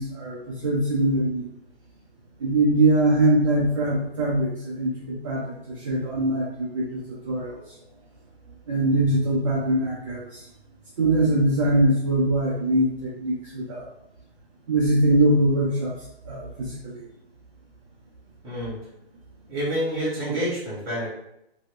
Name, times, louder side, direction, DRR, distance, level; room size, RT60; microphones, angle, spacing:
voice 1, 0.0-1.4 2.4-7.6 8.7-10.4 11.0-13.9 14.7-15.9 16.3-17.0, right 1 dB, 30° right, -4 dB, 0.5 m, -22 dB
voice 2, 18.4-18.8 19.5-21.1, equal, 10° right, -8 dB, 1.3 m, -28 dB
2.9 x 2.7 x 3.0 m, 0.80 s
hypercardioid pair, 155°, 32 cm